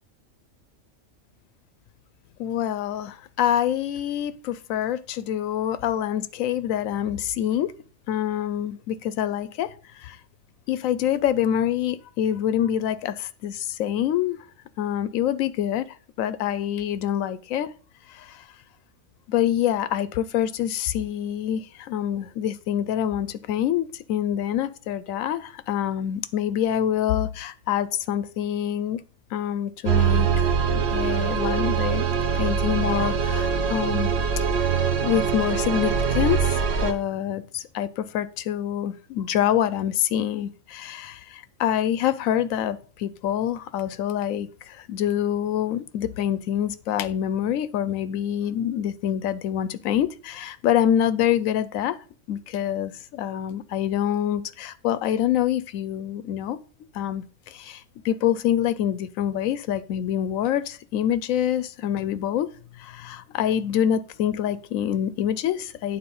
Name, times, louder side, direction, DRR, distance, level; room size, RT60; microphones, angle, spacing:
voice 1, 2.4-7.7 8.1-10.2 10.7-14.4 14.8-15.9 16.2-17.7 18.1-18.4 19.3-29.0 29.3-30.3 30.9-32.1 32.3-34.1 34.5-52.0 52.3-56.6 56.9-62.5 62.8-66.0, left 10 dB, 90° left, 1.0 m, -26 dB
sound 1, 29.8-36.9, right 6 dB, 55° right, 1.0 m, -23 dB
8.9 x 3.8 x 5.4 m
omnidirectional pair, 1.3 m